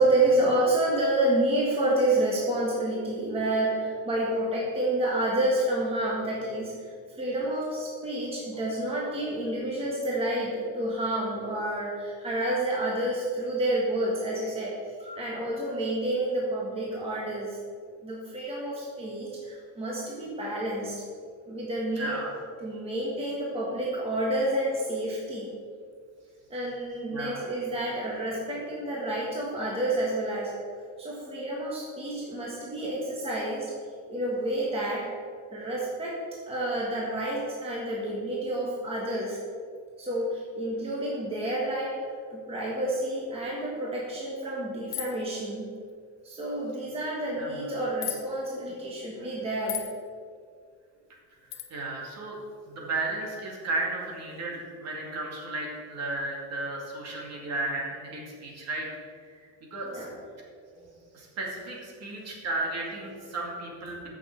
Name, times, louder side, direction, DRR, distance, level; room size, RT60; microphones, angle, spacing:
voice 1, 0.0-14.7 15.0-17.6 18.0-21.0 21.5-22.2 22.6-25.5 26.5-30.5 31.0-33.7 34.1-35.1 35.5-36.2 36.5-39.4 40.0-45.7 46.2-49.8 59.8-60.1 60.7-60.8, right 1 dB, 15° right, -4 dB, 1.5 m, -29 dB
voice 2, 22.0-22.3 27.1-27.4 47.4-47.6 51.7-52.4 52.7-58.9 59.7-60.0 61.1-64.1, right 2 dB, 45° right, -2 dB, 2.4 m, -34 dB
sound 1, 44.9-45.3 48.0-48.2 49.7-49.9 51.5-51.7, left 13 dB, 65° left, 1.2 m, -34 dB
14.5 x 6.4 x 4.6 m, 2.1 s
cardioid pair, 175°, 36 cm